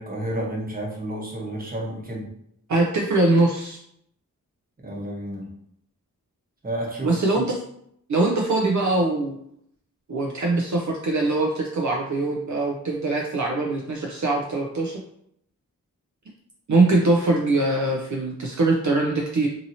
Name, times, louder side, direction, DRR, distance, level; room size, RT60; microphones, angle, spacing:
voice 1, 0.0-2.3 4.8-5.5 6.6-7.5, right 1 dB, 25° right, -3 dB, 0.9 m, -31 dB
voice 2, 2.7-3.8 7.0-7.5 8.1-9.4 10.1-15.0 16.7-19.5, right 2 dB, 60° right, -1 dB, 0.5 m, -22 dB
2.7 x 2.7 x 2.6 m, 0.71 s
wide cardioid pair, 75°, 34 cm